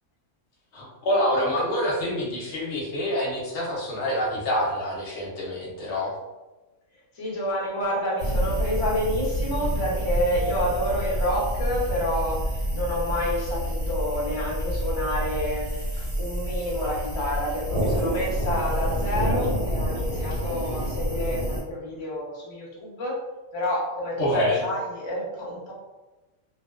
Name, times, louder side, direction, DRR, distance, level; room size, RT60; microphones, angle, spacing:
voice 1, 0.7-6.1 24.2-24.6, left 1 dB, 65° left, -2 dB, 0.8 m, -26 dB
voice 2, 7.1-23.2 23.5-25.7, equal, 35° left, -4 dB, 0.5 m, -29 dB
sound 1, 8.2-21.6, equal, 75° right, 1.2 m, -28 dB
2.6 x 2.1 x 2.3 m, 1.1 s
omnidirectional pair, 1.4 m